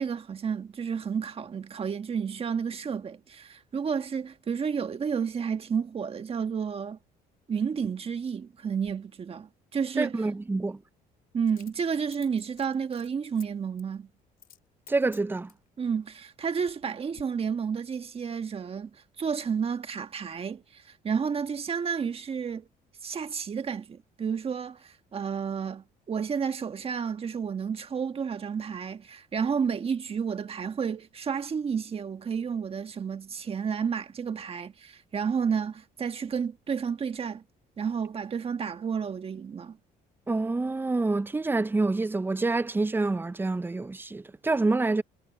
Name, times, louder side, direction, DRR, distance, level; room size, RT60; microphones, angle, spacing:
voice 1, 0.0-7.0 7.5-10.3 11.3-14.1 15.8-22.7 23.0-37.4 37.8-39.8, right 6 dB, 35° right, 1.5 m, -31 dB
Coin (dropping), 8.8-9.0 11.5-13.5 13.8-14.0 14.4-14.6 14.9-15.7 16.3-16.8 17.1-17.2, left 10 dB, 60° left, 4.5 m, -53 dB
voice 2, 10.0-10.8 14.9-15.5 40.3-45.0, right 3 dB, 10° right, 0.5 m, -27 dB
cardioid pair, 110°, 17 cm